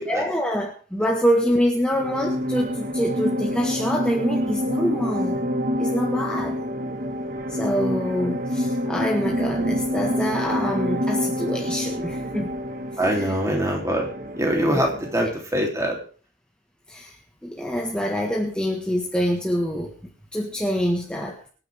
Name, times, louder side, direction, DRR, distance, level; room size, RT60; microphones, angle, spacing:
voice 1, 0.1-5.4 5.8-6.6 7.5-12.5 12.9-13.4 14.7-14.8 15.2-15.3 16.9-19.9 20.3-21.4, equal, 5° left, 0 dB, 1.6 m, -25 dB
sound 1, 1.9-15.2, equal, 50° right, 1.7 m, -27 dB
voice 2, 13.0-14.1 14.4-16.0, equal, 15° right, 1 dB, 3.4 m, -23 dB
25.0 x 9.6 x 3.6 m, 0.39 s
head